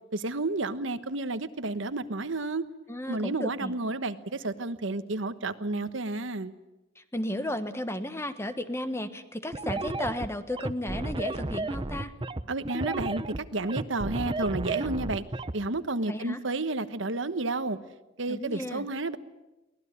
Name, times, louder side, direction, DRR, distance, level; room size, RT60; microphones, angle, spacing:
voice 1, 0.1-2.7 3.1-6.5 12.5-15.2 15.5-17.8 18.2-19.2, right 2 dB, 75° right, 11 dB, 1.2 m, -31 dB
voice 2, 2.9-3.7 7.0-12.1 16.1-16.4 18.3-18.9, left 1 dB, 15° left, 10 dB, 1.3 m, -34 dB
sound 1, 9.5-15.5, right 2 dB, 25° right, 0.8 m, -33 dB
24.0 x 18.5 x 9.8 m, 1.0 s
head